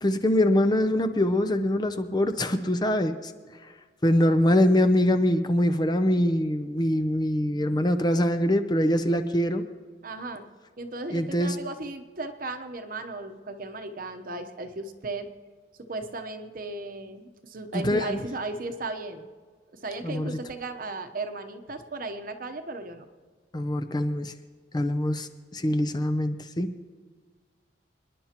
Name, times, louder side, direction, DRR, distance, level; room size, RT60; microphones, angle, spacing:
voice 1, 0.0-3.3 3.6-3.7 4.0-9.6 11.1-11.6 17.7-18.2 20.0-20.3 23.5-24.3 24.7-26.7, left 1 dB, 20° left, 8 dB, 0.5 m, -24 dB
voice 2, 10.0-10.5 10.8-15.3 15.9-19.3 19.7-23.0, right 2 dB, 50° right, 7 dB, 0.9 m, -35 dB
26.0 x 10.5 x 3.0 m, 1.5 s
head